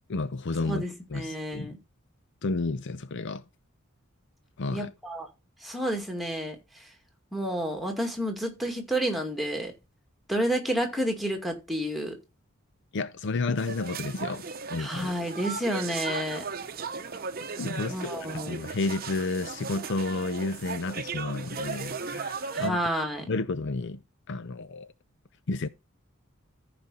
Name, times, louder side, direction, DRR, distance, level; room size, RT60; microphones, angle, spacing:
voice 1, 0.1-0.8 1.1-1.7 2.4-3.4 4.6-4.9 12.9-14.4 14.7-15.1 17.5-22.8 23.3-24.0 24.3-24.9 25.5-25.7, left 3 dB, 55° left, 0.5 m, -31 dB
voice 2, 0.7-1.8 4.7-5.3 5.6-6.6 7.3-9.7 10.3-12.2 14.8-16.4 17.9-18.6 22.5-23.2, right 1 dB, ahead, 2.1 m, -30 dB
sound 1, 13.6-22.7, right 5 dB, 45° right, 0.8 m, -36 dB
14.5 x 5.1 x 4.2 m
head